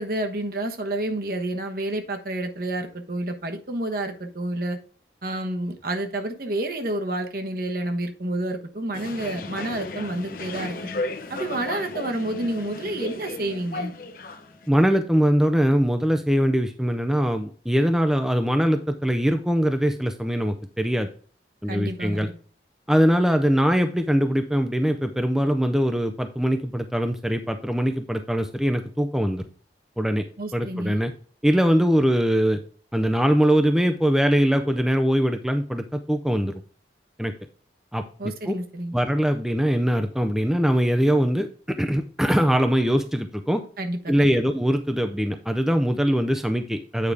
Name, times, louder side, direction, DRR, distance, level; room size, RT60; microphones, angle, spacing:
voice 1, 0.0-4.8 5.2-10.8 11.3-13.9 21.7-22.3 30.4-31.0 38.2-38.9 43.8-44.4, right 1 dB, 55° right, 1.1 m, -29 dB
sound 1, 8.9-14.7, left 2 dB, 50° left, 0.9 m, -34 dB
voice 2, 14.7-21.1 21.6-22.3 22.9-29.4 30.0-30.2 30.5-31.1 31.4-32.6 32.9-36.6 37.2-37.3 37.9-38.5 38.9-43.6 44.1-47.1, equal, 5° right, 0.4 m, -22 dB
8.6 x 4.8 x 3.4 m
head